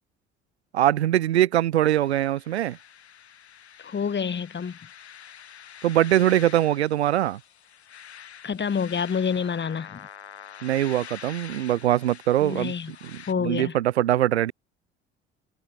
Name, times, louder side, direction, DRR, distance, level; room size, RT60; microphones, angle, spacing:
voice 1, 0.7-2.8 5.8-7.4 10.6-12.7 13.1-14.5, right 12 dB, 85° right, 1.2 m, -22 dB
sound 1, 1.8-13.3, left 9 dB, 85° left, 4.4 m, -46 dB
voice 2, 3.8-4.8 8.4-10.1 12.4-13.7, left 6 dB, 35° left, 3.5 m, -28 dB
figure-of-eight pair, 55°, 32 cm